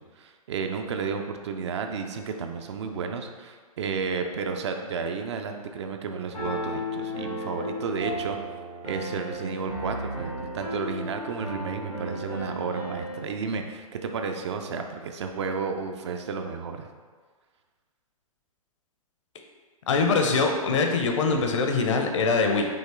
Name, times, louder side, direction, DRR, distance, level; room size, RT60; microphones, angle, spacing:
voice 1, 0.0-8.4 8.8-16.9, right 5 dB, 50° right, 5 dB, 0.4 m, -32 dB
Piano, 6.3-13.2, equal, 90° left, 1.3 m, -34 dB
voice 2, 19.9-22.7, left 4 dB, 55° left, 3 dB, 0.6 m, -23 dB
5.4 x 3.0 x 3.3 m, 1.5 s
figure-of-eight pair, 110°, 19 cm